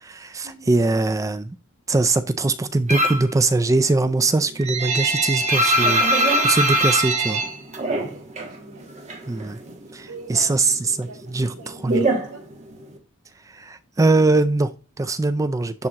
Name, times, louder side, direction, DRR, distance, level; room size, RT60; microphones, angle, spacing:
voice 1, 0.0-1.6 1.9-7.4 9.3-9.6 9.9-11.1 11.3-11.5 11.8-12.0 13.5-15.9, right 3 dB, 15° right, 0.4 m, -22 dB
sound 1, 2.9-3.3 3.7-8.6 8.8-9.9 10.2-13.0, right 1 dB, 30° right, 1.4 m, -22 dB
voice 2, 7.9-8.9 10.1-12.4, right 4 dB, 80° right, 4.0 m, -44 dB
10.5 x 3.6 x 2.9 m
head